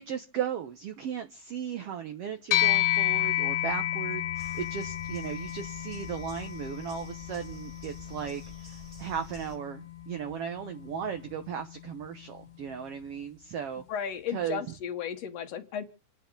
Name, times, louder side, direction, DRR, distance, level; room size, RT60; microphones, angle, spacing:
voice 1, 0.0-13.8 14.3-14.6, right 8 dB, 65° right, 7 dB, 1.6 m, -36 dB
sound 1, 2.5-12.1, left 14 dB, 85° left, 2.6 m, -32 dB
sound 2, 4.3-9.6, equal, 15° right, 1.8 m, -50 dB
voice 2, 13.9-15.8, left 8 dB, 60° left, 6 dB, 2.2 m, -34 dB
28.5 x 10.0 x 3.9 m, 0.35 s
omnidirectional pair, 3.6 m